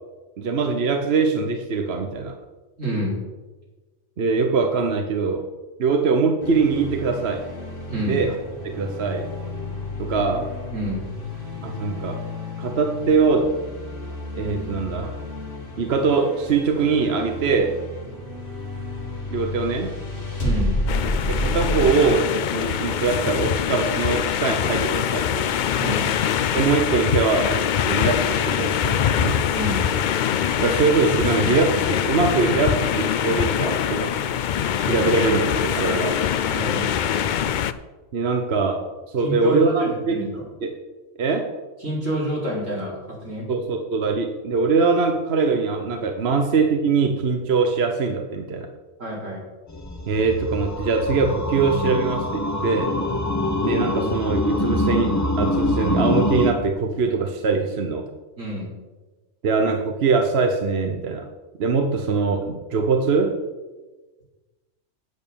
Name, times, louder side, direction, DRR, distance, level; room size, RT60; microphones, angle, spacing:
voice 1, 0.4-2.3 4.2-5.4 5.8-7.4 8.0-8.3 8.6-9.3 10.0-10.5 11.6-12.2 12.6-13.5 14.4-15.1 15.8-17.8 19.3-19.9 21.3-25.5 26.5-27.6 27.9-29.4 30.6-34.1 34.7-36.2 38.1-40.2 40.6-40.7 41.2-41.5 43.5-48.7 50.1-52.9 53.6-58.0 59.4-61.3 61.6-63.4, right 4 dB, 55° right, 4 dB, 1.1 m, -22 dB
voice 2, 2.8-3.2 7.9-8.2 10.7-11.1 20.4-20.8 25.8-26.1 29.6-29.8 36.5-36.9 39.2-40.4 41.8-43.5 49.0-49.4 58.4-58.7, right 1 dB, 75° right, -4 dB, 3.9 m, -28 dB
sound 1, 6.4-21.9, left 2 dB, 45° left, 2.0 m, -31 dB
sound 2, 20.9-37.7, left 9 dB, 70° left, 0.4 m, -23 dB
sound 3, 49.7-56.5, left 2 dB, 15° left, 0.9 m, -24 dB
9.0 x 8.2 x 6.9 m, 1.2 s
omnidirectional pair, 1.3 m